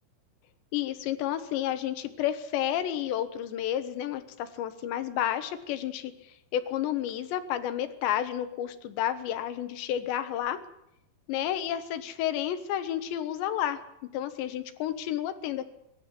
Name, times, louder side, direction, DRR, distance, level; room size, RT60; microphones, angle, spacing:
voice 1, 0.7-10.6 11.3-13.8 14.1-15.7, left 11 dB, 70° left, 11 dB, 3.3 m, -31 dB
23.0 x 12.0 x 9.6 m, 0.82 s
omnidirectional pair, 5.5 m